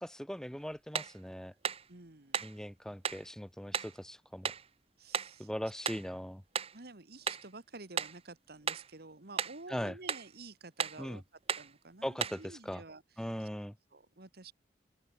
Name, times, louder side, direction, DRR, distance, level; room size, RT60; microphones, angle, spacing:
voice 1, 0.0-1.5 2.4-4.5 5.4-6.4 9.7-9.9 11.0-11.2 12.0-12.8 13.2-13.7, equal, 5° left, 1.5 m, -40 dB
sound 1, 0.9-1.2 1.6-1.9 2.3-2.6 3.0-3.3 3.7-4.0 4.4-4.7 5.1-5.4 5.9-6.1 6.5-6.8 7.3-7.5 8.0-8.2 8.7-8.9 9.4-9.6 10.1-10.3 10.8-11.0 11.5-11.7 12.2-12.4, right 7 dB, 35° right, 1.0 m, -35 dB
voice 2, 1.9-2.5 5.0-5.5 6.7-11.2 11.6-13.0 13.4-13.5 13.9-14.5, right 3 dB, 60° right, 1.9 m, -50 dB
open air
head